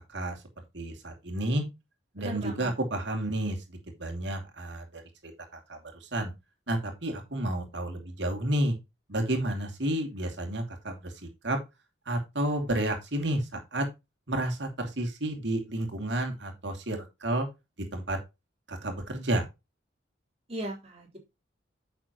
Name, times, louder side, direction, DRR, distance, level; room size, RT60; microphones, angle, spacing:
voice 1, 0.7-1.6 2.1-5.3 5.7-6.3 6.7-8.7 9.1-11.6 12.1-13.9 14.3-17.5 17.9-18.2 18.7-19.4, right 1 dB, 65° right, 3 dB, 2.7 m, -31 dB
voice 2, 2.2-2.7 20.5-21.2, right 1 dB, 35° right, -1 dB, 3.9 m, -37 dB
10.0 x 6.7 x 3.0 m, 0.24 s
head